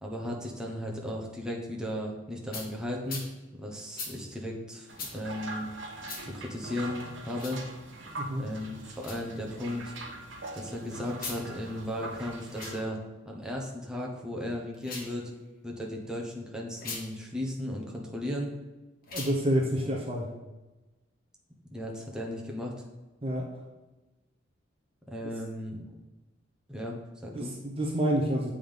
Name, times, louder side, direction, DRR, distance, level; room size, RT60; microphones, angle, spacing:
voice 1, 0.0-3.2 3.6-5.7 6.2-7.6 8.4-9.9 10.5-13.0 13.2-15.3 15.6-18.5 21.7-22.7 25.1-25.8 26.7-27.5, left 1 dB, 5° right, -2 dB, 1.0 m, -36 dB
sound 1, 2.5-2.7 3.1-3.3 4.0-4.1 5.0-5.1 6.0-6.2 7.3-7.6 9.0-9.2 11.1-11.4 12.5-12.8 14.7-15.1 16.8-17.0 19.0-19.4, left 4 dB, 50° left, 1.4 m, -39 dB
sound 2, 4.9-12.8, right 2 dB, 75° right, 1.1 m, -43 dB
voice 2, 19.1-20.3 23.2-23.5 27.3-28.5, right 1 dB, 30° right, 0 dB, 0.8 m, -28 dB
7.7 x 3.7 x 5.1 m, 1.1 s
head